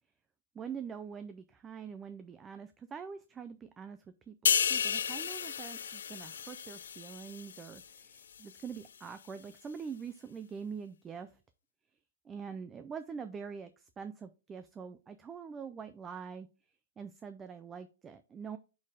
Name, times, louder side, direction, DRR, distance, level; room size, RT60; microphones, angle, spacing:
voice 1, 0.5-4.0 4.3-11.3 12.3-16.5 17.0-18.6, right 6 dB, 10° right, 10 dB, 0.3 m, -44 dB
sound 1, 4.5-8.0 8.4-8.6, left 7 dB, 80° left, 0.4 m, -33 dB
5.3 x 4.4 x 4.9 m, 0.31 s
hypercardioid pair, 170°, 0 cm